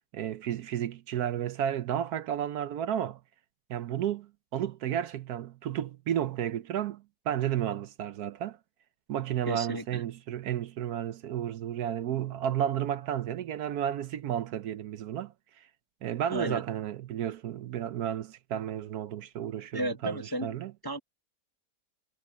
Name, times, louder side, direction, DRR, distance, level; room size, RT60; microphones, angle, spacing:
voice 1, 0.0-3.2 3.7-8.6 9.1-15.3 16.0-20.7, right 10 dB, 70° right, 1.1 m, -32 dB
voice 2, 9.5-10.0 16.3-16.6 19.7-20.5 20.8-21.0, right 1 dB, 20° left, 0.7 m, -33 dB
omnidirectional pair, 1.8 m